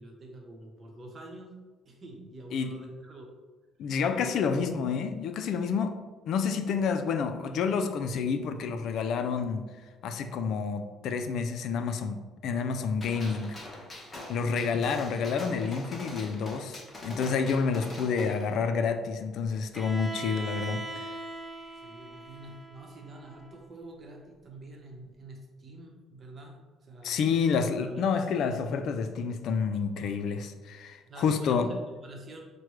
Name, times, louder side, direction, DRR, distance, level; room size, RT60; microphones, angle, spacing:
voice 1, 0.0-1.5 1.8-3.3 4.1-4.5 13.2-13.4 14.8-15.4 21.8-27.2 27.8-28.5 31.1-32.4, right 2 dB, 35° right, 1 dB, 0.9 m, -47 dB
voice 2, 3.8-5.9 6.3-9.6 10.0-13.5 14.3-21.1 27.0-31.7, left 5 dB, 65° left, 8 dB, 0.3 m, -29 dB
Gunshot gunfire, 13.0-18.5, left 1 dB, 25° left, 0.9 m, -43 dB
Bowed string instrument, 19.7-23.6, right 2 dB, 5° right, 0.4 m, -40 dB
5.9 x 2.2 x 3.1 m, 1.3 s
cardioid pair, 105°, 0 cm